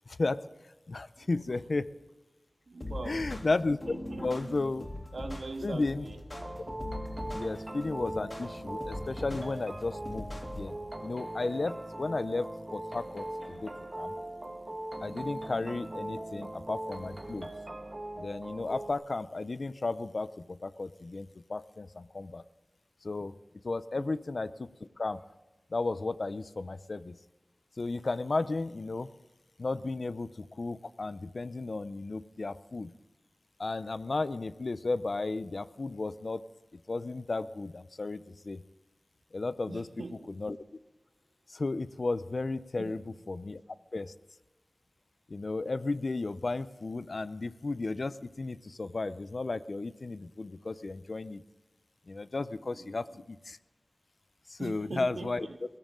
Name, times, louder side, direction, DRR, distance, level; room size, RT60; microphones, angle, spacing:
voice 1, 0.1-0.4 0.9-1.9 3.1-4.0 4.2-4.9 5.6-6.0 7.3-10.3 10.5-10.7 11.0-14.2 15.0-17.5 18.2-22.4 23.0-23.3 23.6-24.7 25.0-25.2 25.7-27.2 27.8-29.1 29.6-32.9 33.6-36.4 36.7-38.6 39.3-39.9 40.3-40.6 41.5-43.6 43.9-44.1 45.3-51.4 52.1-53.6 54.5-55.5, left 3 dB, 70° left, 15 dB, 0.6 m, -34 dB
voice 2, 1.2-1.6 2.7-3.3 3.9-4.5 5.1-6.2 23.9-24.1 39.7-40.4 42.8-43.0 52.7-53.2 54.6-55.6, right 3 dB, 90° right, 5 dB, 1.6 m, -42 dB
sound 1, 2.8-10.8, left 1 dB, 40° left, 3.1 m, -41 dB
sound 2, 6.3-18.9, right 1 dB, 35° right, 1.4 m, -40 dB
21.5 x 16.0 x 3.8 m, 1.1 s
wide cardioid pair, 60°, 0 cm